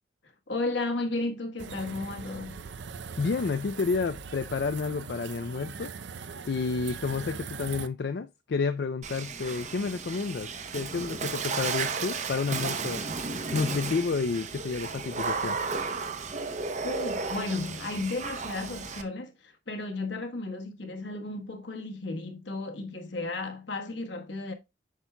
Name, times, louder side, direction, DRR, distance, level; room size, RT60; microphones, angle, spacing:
voice 1, 0.5-2.6 16.8-24.5, left 2 dB, 75° left, 1.2 m, -34 dB
sound 1, 1.6-7.9, right 5 dB, 70° right, 0.5 m, -41 dB
voice 2, 3.2-5.9 6.5-13.0 13.5-15.9, left 4 dB, 60° left, 0.4 m, -30 dB
Water / Splash splatter, 9.0-19.0, right 4 dB, 40° right, 0.7 m, -34 dB
8.1 x 5.9 x 2.2 m
head